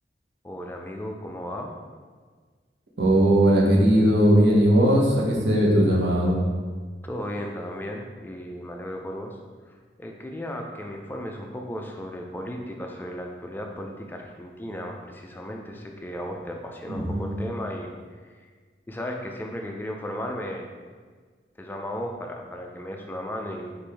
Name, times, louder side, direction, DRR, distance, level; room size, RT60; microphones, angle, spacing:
voice 1, 0.4-1.7 7.0-9.4 9.7-17.9 18.9-20.7 21.6-23.8, equal, 10° left, 1 dB, 0.3 m, -35 dB
voice 2, 3.0-6.4 16.9-17.3, equal, 90° right, -4 dB, 0.9 m, -19 dB
4.6 x 2.5 x 3.4 m, 1.5 s
head